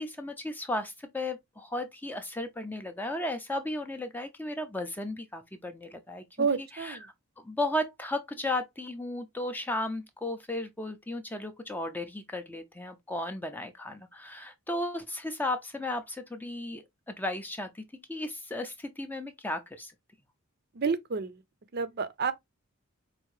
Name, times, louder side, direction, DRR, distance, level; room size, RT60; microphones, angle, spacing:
voice 1, 0.0-6.5 6.8-19.9, left 1 dB, 10° left, 0.4 m, -35 dB
voice 2, 6.4-7.1 20.7-21.4 21.7-22.3, right 5 dB, 45° right, 0.5 m, -29 dB
4.7 x 2.6 x 3.0 m
head